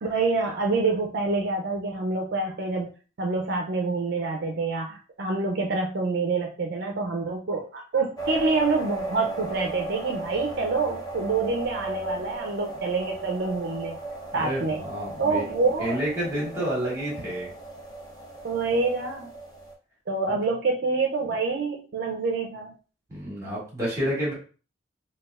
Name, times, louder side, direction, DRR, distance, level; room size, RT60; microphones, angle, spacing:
voice 1, 0.0-2.9 3.2-14.0 14.3-14.8 15.2-16.0 18.4-19.3 20.1-22.7, right 3 dB, 55° right, 1 dB, 0.5 m, -27 dB
sound 1, 8.2-19.7, right 2 dB, 20° left, 0.7 m, -36 dB
voice 2, 14.3-15.5 15.8-17.5 20.3-20.4 23.1-24.3, equal, 15° right, -5 dB, 1.6 m, -29 dB
4.1 x 2.3 x 2.4 m, 0.36 s
head